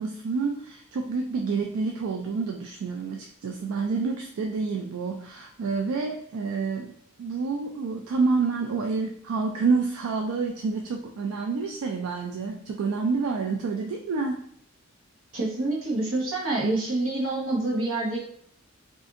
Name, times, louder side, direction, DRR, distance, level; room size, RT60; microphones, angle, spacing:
voice 1, 0.0-14.4, right 4 dB, 90° right, 2 dB, 0.3 m, -28 dB
voice 2, 15.3-18.2, right 2 dB, 70° right, -3 dB, 1.1 m, -27 dB
2.5 x 2.5 x 3.6 m, 0.65 s
head